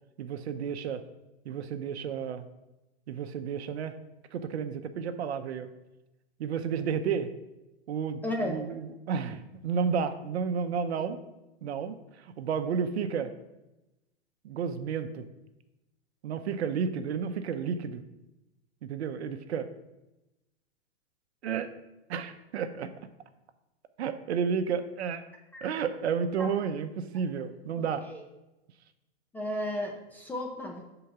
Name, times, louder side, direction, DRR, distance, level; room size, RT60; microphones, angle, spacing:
voice 1, 0.2-1.0 1.4-2.5 3.1-3.9 4.3-5.7 6.4-7.3 7.9-11.2 11.6-13.3 14.4-15.3 16.2-18.0 18.8-19.7 21.4-21.7 22.1-22.9 24.0-25.2 25.6-28.0, right 6 dB, 75° right, 9 dB, 0.7 m, -31 dB
voice 2, 8.2-8.6 25.5-25.6 26.4-26.5 27.8-28.2 29.3-30.8, left 1 dB, 5° left, 1 dB, 0.3 m, -34 dB
5.3 x 3.9 x 5.7 m, 0.98 s
hypercardioid pair, 120°, 33 cm